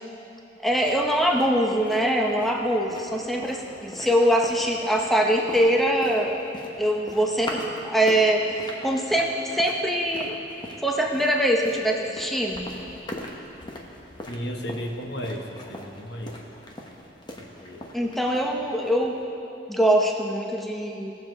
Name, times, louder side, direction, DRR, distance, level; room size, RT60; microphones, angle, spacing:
voice 1, 0.6-6.4 6.8-8.5 8.8-10.4 10.8-12.7 17.9-19.2 19.7-21.1, equal, ahead, 0 dB, 0.7 m, -23 dB
sound 1, 0.7-19.2, left 1 dB, 25° left, 0.9 m, -41 dB
voice 2, 14.3-16.4 17.4-17.9, equal, 65° left, 2 dB, 1.1 m, -34 dB
18.0 x 7.2 x 3.8 m, 2.8 s
head